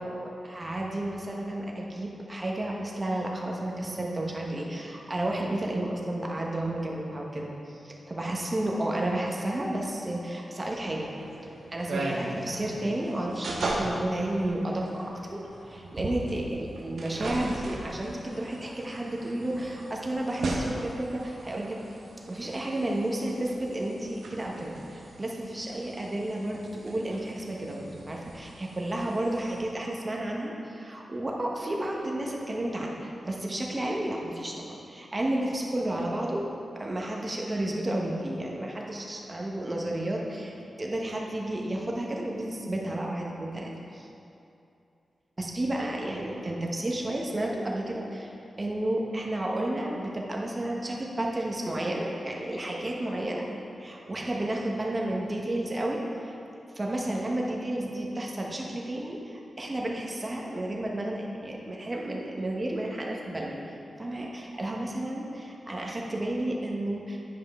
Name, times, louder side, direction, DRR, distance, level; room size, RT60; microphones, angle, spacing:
voice 1, 0.0-11.1 11.7-15.0 15.3-21.8 22.3-36.5 36.7-44.1 45.4-48.3 48.6-53.5 53.8-56.4 56.7-63.6 64.0-67.2, right 1 dB, 25° right, -1 dB, 1.1 m, -32 dB
sound 1, 10.9-29.6, right 2 dB, 85° right, 0.9 m, -38 dB
9.6 x 5.5 x 3.6 m, 2.7 s
wide cardioid pair, 100°, 0 cm